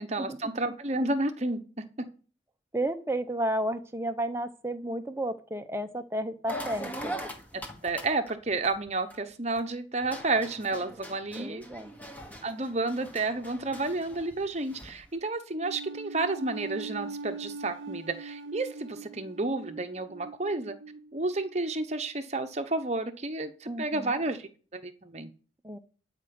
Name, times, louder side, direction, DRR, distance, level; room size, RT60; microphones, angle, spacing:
voice 1, 0.0-2.1 7.8-11.7 12.4-20.7 21.1-25.3, right 2 dB, 35° right, 8 dB, 1.0 m, -31 dB
voice 2, 2.7-7.2 11.4-11.9 23.7-24.1 25.6-25.8, right 1 dB, 15° right, 7 dB, 0.8 m, -32 dB
sound 1, 6.5-9.6 10.0-15.1, equal, 10° left, 1.4 m, -41 dB
sound 2, 15.6-22.0, right 3 dB, 85° right, 0.7 m, -42 dB
12.0 x 5.3 x 7.6 m, 0.39 s
head